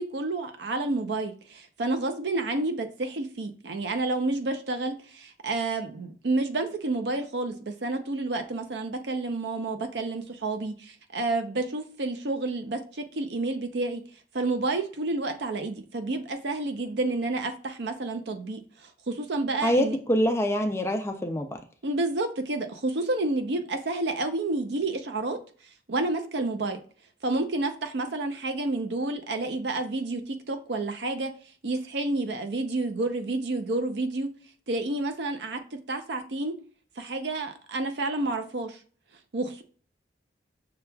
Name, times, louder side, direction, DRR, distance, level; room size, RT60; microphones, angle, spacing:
voice 1, 0.0-14.0 14.3-20.0 21.8-25.4 25.9-26.8 27.2-31.3 31.6-34.3 34.7-35.6 35.9-36.5 37.0-38.8 39.3-39.6, right 2 dB, 65° right, 0.6 m, -30 dB
voice 2, 19.6-21.6, equal, 15° left, 0.4 m, -25 dB
6.7 x 2.3 x 2.2 m
head